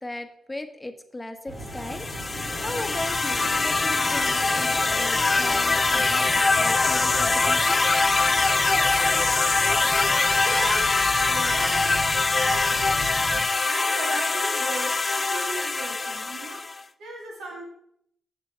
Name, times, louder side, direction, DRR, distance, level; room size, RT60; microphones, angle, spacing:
voice 1, 0.0-2.1 2.6-7.8, left 1 dB, 15° left, 7 dB, 1.1 m, -37 dB
Fixed-wing aircraft airplane, 1.5-13.4, right 1 dB, 50° right, 2.7 m, -37 dB
sound 1, 1.7-16.8, left 3 dB, 40° left, 0.5 m, -23 dB
voice 2, 10.4-12.0 12.4-12.8 13.6-16.7 17.0-17.6, right 2 dB, 80° right, -1 dB, 2.2 m, -36 dB
6.8 x 6.8 x 4.4 m, 0.73 s
supercardioid pair, 50°, 0 cm